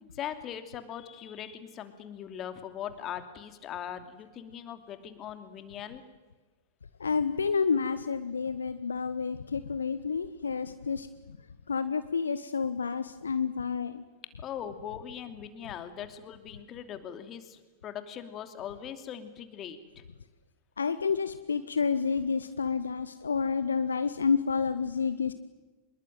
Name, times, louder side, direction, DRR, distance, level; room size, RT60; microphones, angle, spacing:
voice 1, 0.0-6.0 14.4-20.0, left 9 dB, 30° left, 9 dB, 2.9 m, -40 dB
voice 2, 7.0-11.1 11.7-14.0 20.8-25.3, left 5 dB, 75° left, 13 dB, 1.0 m, -29 dB
26.0 x 21.5 x 9.2 m, 1.2 s
figure-of-eight pair, 90°, 0 cm